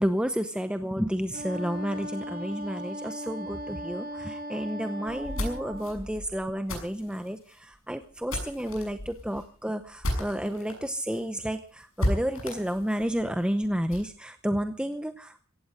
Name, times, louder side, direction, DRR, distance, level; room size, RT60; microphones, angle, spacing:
voice 1, 0.0-15.4, equal, 5° right, 9 dB, 0.8 m, -31 dB
Wind instrument woodwind instrument, 1.3-6.0, equal, 45° right, 5.7 m, -38 dB
sound 1, 5.1-10.8 11.1-11.2 11.5-11.6 12.0-14.1, left 1 dB, 70° left, 6.6 m, -34 dB
17.0 x 15.5 x 5.3 m, 0.41 s
head